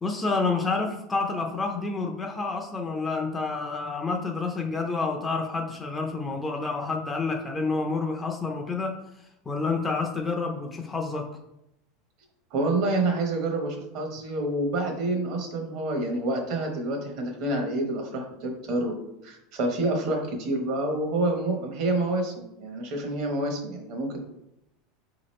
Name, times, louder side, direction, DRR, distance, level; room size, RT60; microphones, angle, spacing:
voice 1, 0.0-8.9 9.5-11.2, left 4 dB, 15° left, 2 dB, 0.5 m, -29 dB
voice 2, 12.5-18.9 19.2-24.2, right 2 dB, 50° right, 3 dB, 1.0 m, -28 dB
4.8 x 2.9 x 3.1 m, 0.85 s
supercardioid pair, 145°, 0 cm